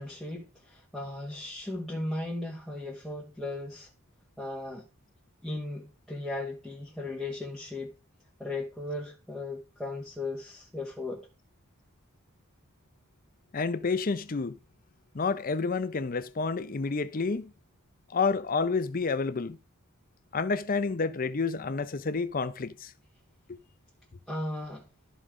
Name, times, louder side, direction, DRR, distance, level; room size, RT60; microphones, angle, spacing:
voice 1, 0.0-3.9 4.4-4.9 5.4-7.9 8.4-11.3 24.3-24.9, left 2 dB, ahead, 1.5 m, -36 dB
voice 2, 13.5-14.6 15.1-17.5 18.1-19.6 20.3-22.9 23.5-23.6, left 4 dB, 40° left, 0.6 m, -29 dB
13.0 x 5.0 x 3.7 m
head